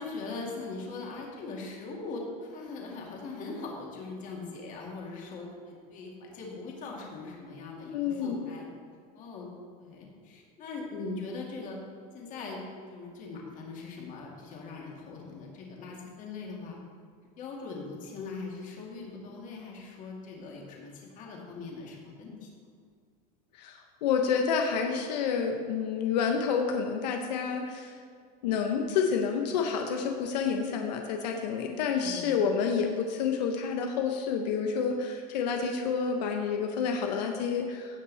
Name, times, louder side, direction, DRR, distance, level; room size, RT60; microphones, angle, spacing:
voice 1, 0.0-8.7 9.1-9.5 9.8-11.8 12.1-12.6 12.9-16.8 17.4-22.5 32.0-32.4, left 3 dB, 40° left, -1 dB, 2.3 m, -41 dB
voice 2, 7.9-8.4 23.6-28.0 28.4-38.0, left 6 dB, 85° left, 3 dB, 1.0 m, -29 dB
16.5 x 5.7 x 4.1 m, 2.1 s
supercardioid pair, 150°, 21 cm